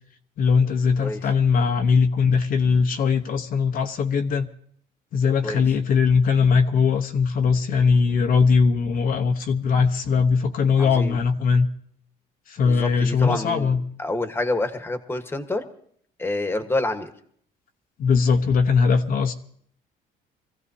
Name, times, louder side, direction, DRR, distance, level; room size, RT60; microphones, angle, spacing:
voice 1, 0.4-4.5 5.1-11.7 12.5-13.8 18.0-19.3, left 5 dB, 55° left, 5 dB, 0.9 m, -20 dB
voice 2, 10.8-11.2 12.6-15.7 16.2-17.1, left 2 dB, 15° left, 8 dB, 1.3 m, -28 dB
25.0 x 15.0 x 2.8 m, 0.62 s
cardioid pair, 110°, 17 cm